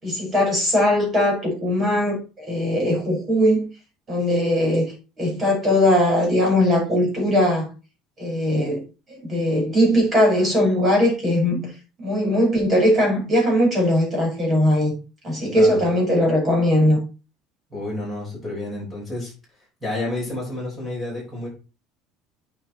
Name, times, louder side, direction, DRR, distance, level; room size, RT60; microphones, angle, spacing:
voice 1, 0.0-3.7 4.1-7.7 8.2-8.8 9.1-11.7 12.0-15.0 15.2-17.0, left 1 dB, 20° right, 5.9 m, -20 dB
voice 2, 17.7-19.3 19.8-21.5, left 2 dB, ahead, 5.9 m, -30 dB
8.9 x 5.4 x 4.6 m
cardioid pair, 165°, 0 cm